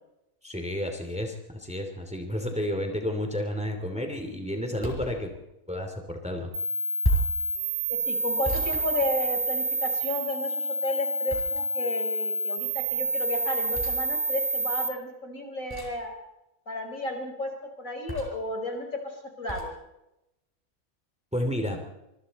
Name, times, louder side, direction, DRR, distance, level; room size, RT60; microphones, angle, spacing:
voice 1, 0.4-5.4 5.7-6.5 21.3-21.8, left 1 dB, 5° right, 4 dB, 2.8 m, -31 dB
sound 1, 4.8-5.2 7.0-7.4 8.4-9.6 11.3-11.9 13.7-14.0 15.7-16.1 18.1-18.5 19.5-19.7, right 1 dB, 15° left, 5.1 m, -31 dB
sound 2, 6.5-14.9, right 2 dB, 75° right, 3.3 m, -29 dB
voice 2, 7.9-16.1 16.7-17.5 17.8-19.7, left 1 dB, 60° left, 2 dB, 5.4 m, -33 dB
25.5 x 24.5 x 4.2 m, 0.89 s
omnidirectional pair, 1.5 m